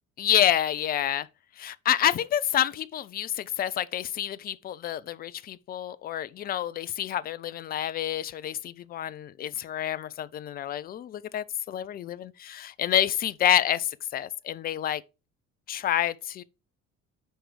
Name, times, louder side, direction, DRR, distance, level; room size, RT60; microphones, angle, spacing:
voice 1, 0.2-1.3 1.6-15.0 15.7-16.4, left 11 dB, 25° left, 0.3 m, -28 dB
6.3 x 4.5 x 4.7 m
figure-of-eight pair, 55°, 41 cm